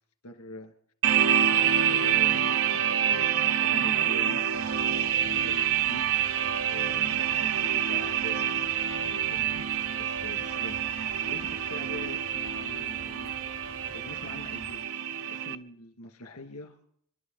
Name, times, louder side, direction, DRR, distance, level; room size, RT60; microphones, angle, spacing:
voice 1, 0.2-0.7 1.5-4.4 5.2-6.1 6.7-8.7 8.9-9.5 10.0-13.3 13.9-14.8 15.3-16.8, left 1 dB, 75° left, 6 dB, 2.3 m, -43 dB
sound 1, 1.0-15.5, right 9 dB, 65° right, 0.5 m, -27 dB
sound 2, 4.5-14.8, left 2 dB, 45° left, 5.6 m, -49 dB
27.5 x 11.5 x 4.1 m, 0.68 s
head